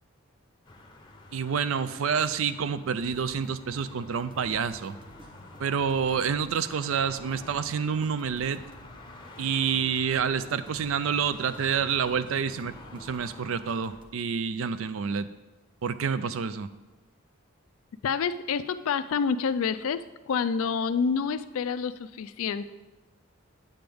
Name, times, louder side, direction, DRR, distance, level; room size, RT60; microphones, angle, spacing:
sound 1, 0.6-14.0, left 2 dB, 20° left, 0.7 m, -49 dB
voice 1, 1.3-5.0 5.6-8.6 9.4-15.3 15.8-16.7, right 6 dB, 65° right, 13 dB, 0.4 m, -28 dB
sound 2, 3.0-14.1, equal, 20° right, 0.7 m, -52 dB
voice 2, 18.0-22.7, left 6 dB, 70° left, 13 dB, 0.3 m, -28 dB
8.7 x 7.8 x 3.5 m, 1.1 s
head